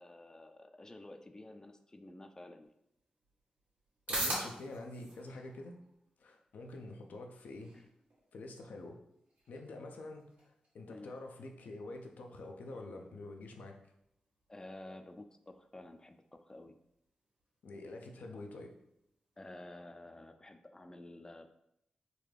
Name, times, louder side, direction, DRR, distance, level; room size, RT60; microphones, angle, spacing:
voice 1, 0.0-2.7 7.7-7.9 10.9-11.1 14.5-16.7 19.4-21.5, left 1 dB, 20° left, 8 dB, 0.4 m, -51 dB
sound 1, 2.6-19.6, right 1 dB, 85° right, 1.4 m, -48 dB
voice 2, 4.1-5.8 6.2-7.7 8.3-9.0 9.5-13.8 17.6-18.7, left 2 dB, 80° left, 3 dB, 0.5 m, -47 dB
3.8 x 2.3 x 3.2 m, 0.78 s
supercardioid pair, 40°, 3 cm